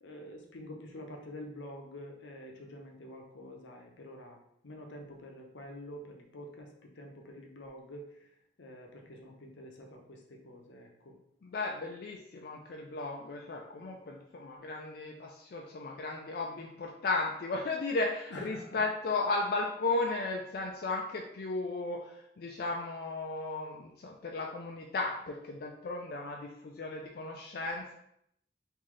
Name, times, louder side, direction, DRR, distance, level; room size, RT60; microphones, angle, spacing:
voice 1, 0.0-4.4 4.6-8.1 8.6-11.1 18.3-18.8, left 1 dB, 80° left, 1 dB, 0.7 m, -47 dB
voice 2, 11.4-27.9, left 3 dB, 55° left, 0 dB, 0.3 m, -35 dB
3.7 x 2.7 x 3.1 m, 0.75 s
head